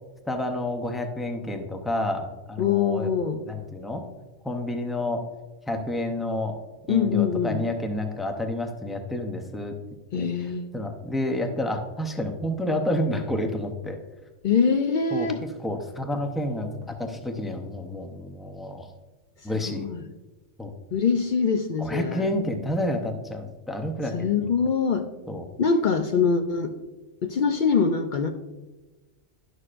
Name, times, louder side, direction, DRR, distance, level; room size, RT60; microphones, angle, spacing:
voice 1, 0.3-3.1 3.5-4.0 4.4-5.3 5.7-6.6 6.9-9.8 10.1-10.3 10.7-14.0 15.1-15.3 15.6-18.9 19.4-19.9 20.6-20.7 21.8-24.5 25.3-25.5, left 1 dB, ahead, 4 dB, 0.3 m, -29 dB
voice 2, 2.6-3.4 6.9-7.6 10.1-10.7 14.4-15.4 19.7-20.0 20.9-22.3 24.1-25.1 25.6-26.7 27.2-28.3, left 6 dB, 60° left, 5 dB, 0.5 m, -23 dB
11.0 x 6.5 x 2.5 m, 1.2 s
omnidirectional pair, 1.2 m